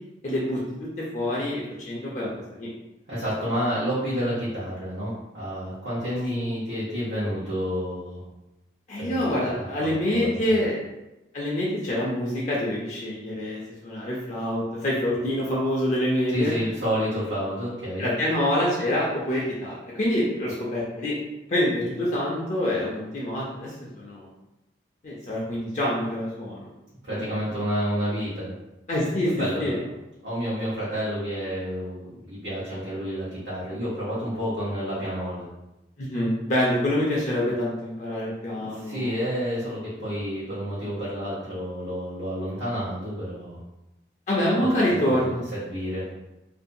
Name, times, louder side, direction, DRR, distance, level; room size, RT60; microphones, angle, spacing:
voice 1, 0.2-0.6 1.1-2.7 6.2-6.3 8.9-10.8 11.3-16.5 18.0-21.2 21.5-24.3 25.0-26.7 27.1-27.4 28.9-29.8 36.0-39.1 44.3-45.4, left 1 dB, 40° left, -4 dB, 0.4 m, -26 dB
voice 2, 3.1-8.2 9.0-10.6 16.3-18.1 27.0-28.5 29.2-29.8 30.2-35.4 38.6-43.6 44.6-46.0, equal, 85° right, -11 dB, 0.9 m, -30 dB
2.6 x 2.2 x 2.6 m, 0.97 s
head